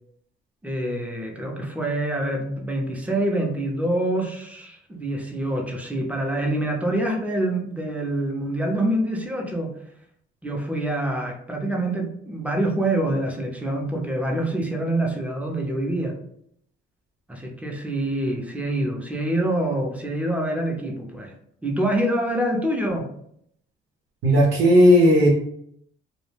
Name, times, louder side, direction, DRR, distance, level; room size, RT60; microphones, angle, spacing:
voice 1, 0.6-9.8 10.4-16.1 17.3-21.3 21.6-23.1, right 1 dB, 5° right, 1 dB, 0.5 m, -26 dB
voice 2, 24.2-25.3, equal, 90° right, -3 dB, 0.7 m, -15 dB
2.2 x 2.0 x 3.2 m, 0.68 s
cardioid pair, 90°, 20 cm